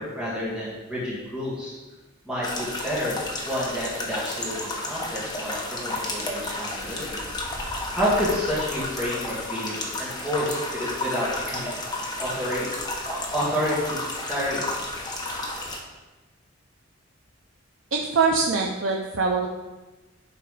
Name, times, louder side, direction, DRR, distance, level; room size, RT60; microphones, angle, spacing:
voice 1, 0.0-1.7 2.3-3.2 3.5-7.2 7.9-11.8 12.2-12.7 13.1-14.0 14.3-14.7, equal, 5° right, -9 dB, 2.1 m, -29 dB
sound 1, 2.4-15.8, left 2 dB, 20° left, 1.2 m, -32 dB
voice 2, 17.9-19.5, right 4 dB, 90° right, 0 dB, 0.7 m, -23 dB
10.5 x 3.8 x 5.0 m, 1.2 s
head